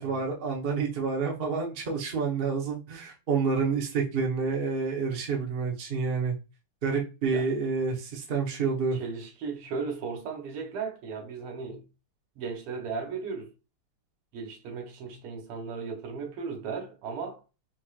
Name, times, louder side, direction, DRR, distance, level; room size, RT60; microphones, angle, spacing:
voice 1, 0.0-6.3 6.8-9.0, right 5 dB, 45° right, 0.7 m, -28 dB
voice 2, 8.9-11.9 12.4-13.5 14.3-17.4, right 5 dB, 85° right, 1.9 m, -36 dB
4.2 x 3.2 x 2.3 m
omnidirectional pair, 2.4 m